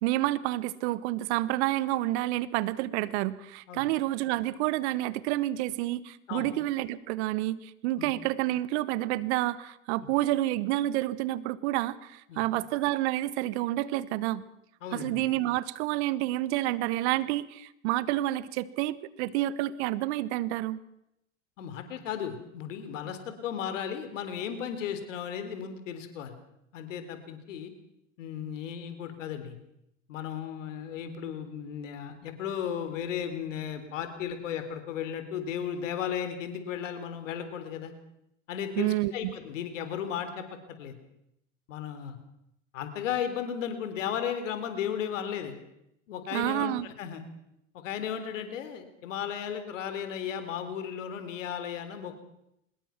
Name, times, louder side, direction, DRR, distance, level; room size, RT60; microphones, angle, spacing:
voice 1, 0.0-14.4 14.9-20.8 38.8-39.3 46.3-46.9, right 16 dB, 60° right, 18 dB, 1.3 m, -29 dB
voice 2, 14.8-15.2 21.6-26.3 26.7-27.7 28.2-29.6 30.1-37.9 38.5-40.9 41.7-42.2 42.7-45.6 46.1-47.2 47.7-52.3, left 8 dB, 70° left, 9 dB, 3.8 m, -35 dB
24.5 x 21.0 x 6.0 m, 0.81 s
hypercardioid pair, 85°, 39 cm